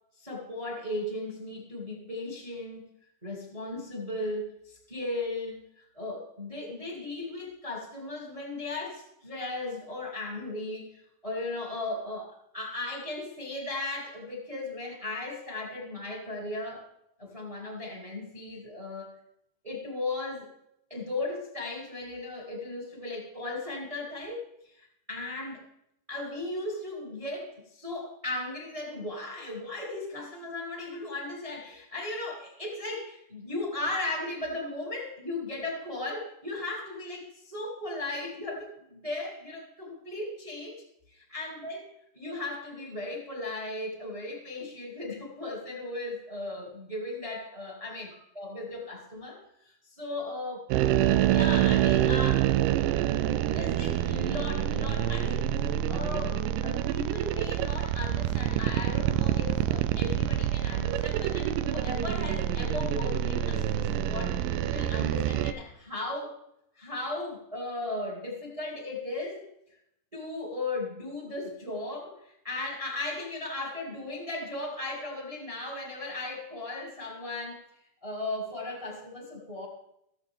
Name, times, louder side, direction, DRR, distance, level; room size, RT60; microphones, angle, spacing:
voice 1, 0.2-2.8 3.2-16.8 17.2-19.1 19.6-20.5 20.9-25.6 26.1-41.9 42.1-48.1 48.3-50.7 51.0-52.5 53.2-66.3 66.7-69.5 70.1-77.6 78.0-79.7, left 2 dB, 15° right, -1 dB, 1.5 m, -36 dB
sound 1, 50.7-65.5, right 12 dB, 85° right, 1.9 m, -27 dB
17.5 x 7.0 x 3.7 m, 0.79 s
omnidirectional pair, 4.3 m